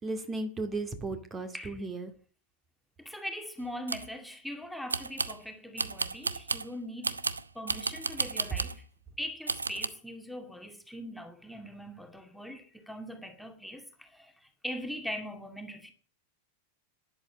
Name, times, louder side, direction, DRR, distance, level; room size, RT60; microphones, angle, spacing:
voice 1, 0.0-2.1, right 2 dB, 20° right, 2.2 m, -35 dB
voice 2, 3.0-7.2 7.6-8.8 9.2-14.3 14.6-15.9, equal, ahead, 2.3 m, -41 dB
sound 1, 3.6-4.1 4.9-5.4 5.8-6.7 7.0-8.8 9.5-9.9, right 4 dB, 75° right, 0.9 m, -33 dB
12.5 x 11.0 x 8.7 m
figure-of-eight pair, 90°, 0 cm